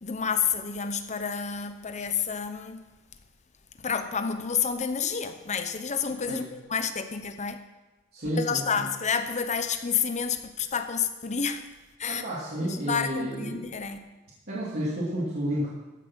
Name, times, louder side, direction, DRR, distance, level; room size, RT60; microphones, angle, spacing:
voice 1, 0.0-2.9 3.8-7.6 8.3-11.7 12.0-12.2 12.6-14.0, left 6 dB, 35° left, 8 dB, 0.8 m, -29 dB
voice 2, 8.1-8.8 12.1-13.6 14.5-15.7, equal, 45° right, -8 dB, 2.7 m, -31 dB
14.5 x 7.2 x 6.2 m, 1.2 s
head